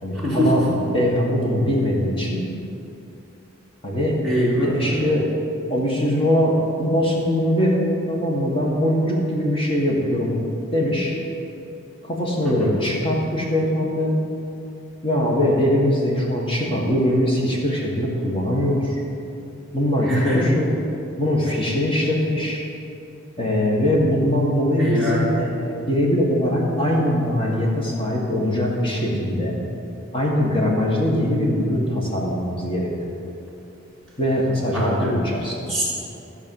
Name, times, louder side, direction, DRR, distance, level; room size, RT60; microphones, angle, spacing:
voice 1, 0.0-2.4 3.8-4.2 4.6-5.3 5.7-10.3 10.7-11.2 12.0-14.2 15.0-19.0 19.7-20.7 21.2-22.6 23.4-29.6 30.1-32.9 34.2-35.7, left 1 dB, 25° left, -3 dB, 1.7 m, -22 dB
voice 2, 4.2-5.0 12.4-12.7 20.1-20.5 24.8-25.2 34.7-35.1 35.7-35.8, equal, ahead, -9 dB, 3.0 m, -22 dB
14.0 x 4.8 x 7.2 m, 2.8 s
head